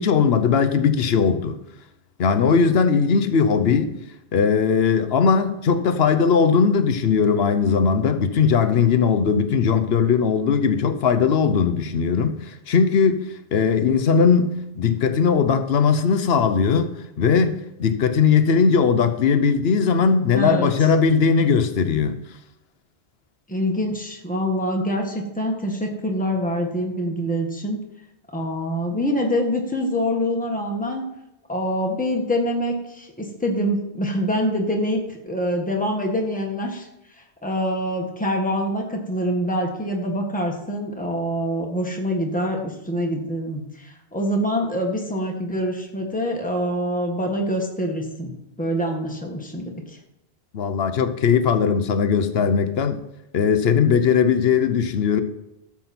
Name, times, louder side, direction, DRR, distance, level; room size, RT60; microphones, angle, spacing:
voice 1, 0.0-1.6 2.2-3.9 4.3-13.3 13.5-22.2 50.5-53.0 53.3-55.2, left 6 dB, 70° left, 1.0 m, -19 dB
voice 2, 20.3-20.7 23.5-27.8 28.3-31.0 31.5-36.9 37.4-48.3 48.6-50.0, equal, 10° left, 1.5 m, -25 dB
13.0 x 7.3 x 4.3 m
omnidirectional pair, 1.1 m